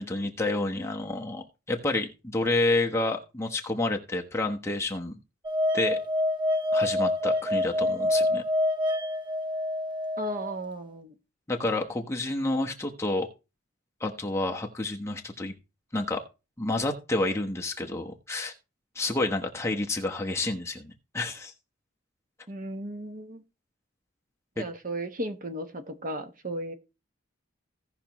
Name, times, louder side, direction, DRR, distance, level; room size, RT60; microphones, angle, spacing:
voice 1, 0.0-5.1 5.7-6.0 6.7-8.4 11.5-13.3 14.0-15.5 15.9-16.2 16.6-18.5 18.9-21.5 24.6-24.7, left 2 dB, 15° left, 1.1 m, -29 dB
sound 1, 5.4-10.5, left 1 dB, 25° right, 0.8 m, -26 dB
voice 2, 10.2-11.1 22.5-23.4 24.6-26.7, right 1 dB, 45° right, 1.1 m, -35 dB
17.0 x 5.9 x 3.0 m
head